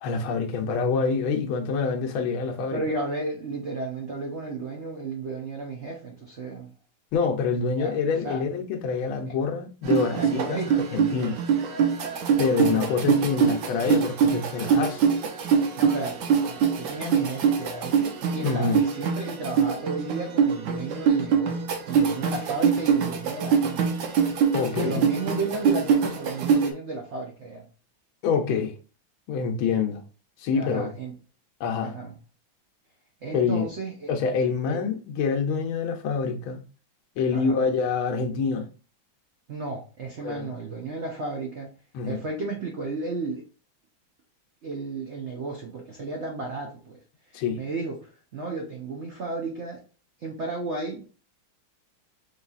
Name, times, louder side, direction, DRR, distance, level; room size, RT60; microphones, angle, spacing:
voice 1, 0.0-2.8 7.1-11.4 12.4-15.0 18.4-18.8 24.5-25.1 28.2-28.7 29.3-30.0 30.4-30.9 31.6-32.0 33.3-33.7 34.1-36.6 37.2-38.7 40.2-40.5 41.9-42.2 47.3-47.6, left 5 dB, 85° left, 1.6 m, -26 dB
voice 2, 2.7-6.7 7.7-7.9 8.2-8.4 9.3-9.4 10.1-10.7 12.5-13.1 15.8-23.9 24.8-27.7 30.6-31.1 31.8-32.1 33.2-34.1 34.7-34.8 37.3-37.7 39.5-41.7 42.0-43.4 44.6-47.0 47.3-49.8 50.2-51.2, right 3 dB, 85° right, 0.6 m, -33 dB
sound 1, 9.8-26.7, right 7 dB, 65° right, 1.2 m, -24 dB
5.0 x 3.3 x 2.4 m
omnidirectional pair, 2.2 m